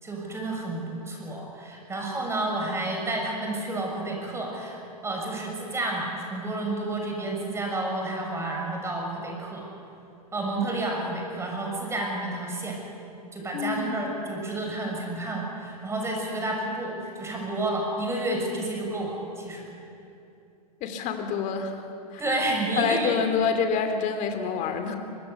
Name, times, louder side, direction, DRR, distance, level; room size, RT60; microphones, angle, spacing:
voice 1, 0.0-9.6 10.3-12.8 13.3-19.6 22.2-23.1, right 2 dB, 15° right, 0 dB, 6.5 m, -30 dB
voice 2, 13.5-13.9 20.8-21.9 22.1-22.2 22.8-25.0, left 6 dB, 40° left, 7 dB, 2.6 m, -27 dB
24.5 x 21.5 x 8.2 m, 2.7 s
hypercardioid pair, 105°, 20 cm